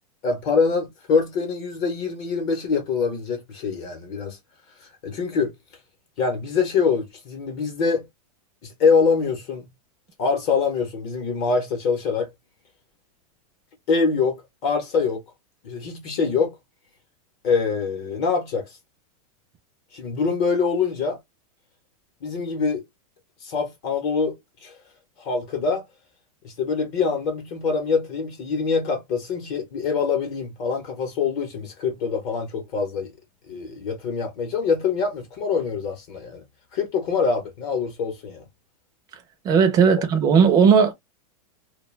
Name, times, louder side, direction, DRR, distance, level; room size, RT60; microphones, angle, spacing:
voice 1, 0.2-4.4 4.8-5.5 6.2-8.1 8.6-9.7 10.2-12.3 13.9-14.4 14.6-15.2 15.6-16.5 17.4-18.8 19.9-21.2 22.2-22.8 23.4-24.7 25.2-25.8 26.4-33.1 33.5-36.4 36.7-38.4, left 5 dB, 40° left, 0.8 m, -24 dB
voice 2, 39.4-40.9, right 6 dB, 20° right, 0.4 m, -16 dB
2.3 x 2.2 x 3.1 m
supercardioid pair, 160°, 19 cm